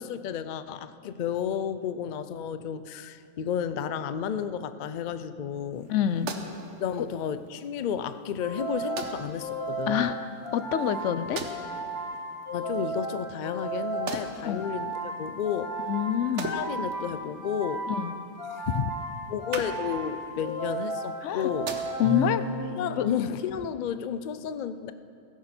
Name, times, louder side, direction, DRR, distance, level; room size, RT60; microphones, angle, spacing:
voice 1, 0.0-5.9 6.8-10.1 12.5-15.8 16.4-17.9 18.5-18.9 19.3-21.7 22.8-24.9, left 8 dB, 85° left, 12 dB, 0.4 m, -32 dB
sound 1, 5.7-22.4, right 4 dB, 60° right, 1.3 m, -43 dB
voice 2, 5.9-6.3 7.0-7.1 9.9-11.4 14.5-14.7 15.9-16.5 17.9-18.1 21.2-21.5 22.0-22.5 23.0-23.1, left 10 dB, 70° left, 12 dB, 0.9 m, -27 dB
sound 2, 8.4-22.9, right 1 dB, 15° left, 1.5 m, -34 dB
16.5 x 14.5 x 4.4 m, 2.5 s
omnidirectional pair, 1.4 m